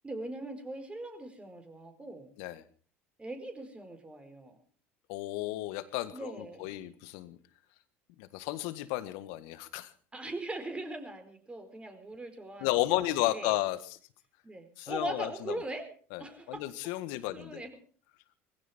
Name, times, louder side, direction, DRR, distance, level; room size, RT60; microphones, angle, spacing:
voice 1, 0.0-2.4 3.2-4.6 6.1-6.9 10.1-13.6 14.4-15.9 16.2-16.6 17.3-17.7, right 2 dB, 15° right, 7 dB, 4.6 m, -41 dB
voice 2, 5.1-7.4 8.2-9.9 12.6-14.0 14.8-15.6 16.1-17.6, left 17 dB, 70° left, 13 dB, 1.6 m, -33 dB
20.0 x 16.0 x 4.3 m, 0.41 s
hypercardioid pair, 75°, 7 cm